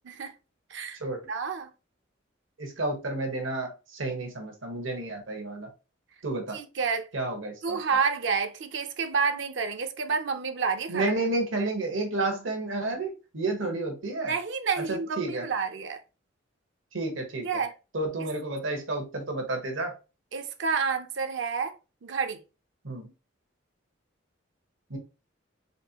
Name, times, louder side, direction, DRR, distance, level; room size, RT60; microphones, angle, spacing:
voice 1, 1.3-1.7 6.5-7.1 7.6-11.1 11.6-11.7 14.2-16.0 17.4-17.7 18.2-18.3 20.3-21.7 22.0-22.4, right 5 dB, 65° right, 0.6 m, -29 dB
voice 2, 2.6-5.7 6.2-6.6 7.1-7.8 10.9-14.3 14.8-15.5 16.9-17.5 17.9-19.9 22.8-23.1 24.9-25.0, right 2 dB, 80° right, 1.2 m, -31 dB
4.2 x 3.6 x 2.9 m
head